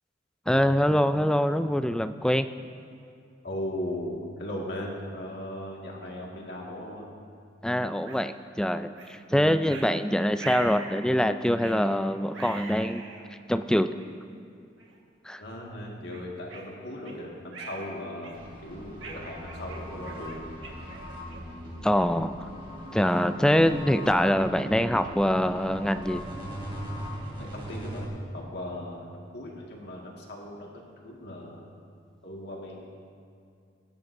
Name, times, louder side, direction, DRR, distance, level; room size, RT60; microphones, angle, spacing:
voice 1, 0.5-2.5 7.6-13.0 13.5-13.9 15.3-15.4 21.8-22.3 22.9-26.2, equal, 5° left, 10 dB, 0.3 m, -24 dB
voice 2, 3.4-7.1 15.4-20.6 27.3-31.6 32.2-32.9, left 1 dB, 60° left, -2 dB, 1.9 m, -38 dB
sound 1, 8.1-8.2 9.0-9.1 9.7-9.9 10.4-11.0 11.6-11.8 12.3-13.2 14.0-14.1 14.8-15.0 15.4-15.6 16.1-17.2 17.5-17.9 18.2-18.6 19.0-21.6, right 4 dB, 90° right, 1.6 m, -43 dB
sound 2, 18.3-28.1, equal, 30° right, 2.9 m, -39 dB
18.5 x 12.0 x 2.7 m, 2.4 s
head